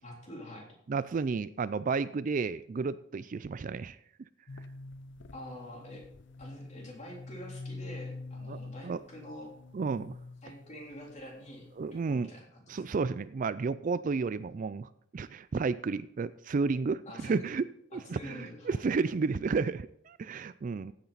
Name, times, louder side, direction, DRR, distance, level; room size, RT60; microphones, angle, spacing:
voice 1, 0.0-0.7 5.3-6.0 6.4-9.5 10.4-12.8 17.1-17.5 17.9-18.8, equal, 35° left, -2 dB, 3.6 m, -46 dB
voice 2, 0.9-4.0 8.5-8.6 8.8-9.0 9.7-10.2 11.8-12.3 12.7-17.7 17.9-20.9, right 4 dB, 40° right, 15 dB, 0.3 m, -32 dB
sound 1, 4.5-12.0, left 3 dB, 60° left, 0.6 m, -46 dB
15.0 x 8.7 x 4.1 m, 0.71 s
head